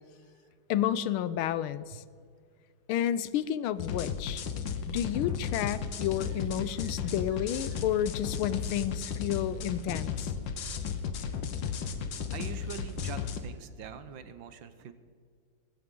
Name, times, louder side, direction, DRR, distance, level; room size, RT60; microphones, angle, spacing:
voice 1, 0.7-2.0 2.9-4.4 4.9-10.3, left 11 dB, 90° left, 16 dB, 1.5 m, -31 dB
sound 1, 3.8-13.4, left 6 dB, 70° left, 1.6 m, -34 dB
voice 2, 6.3-7.1 7.5-7.9 12.3-14.9, right 7 dB, 70° right, 11 dB, 1.5 m, -45 dB
19.0 x 15.0 x 3.8 m, 2.1 s
omnidirectional pair, 2.2 m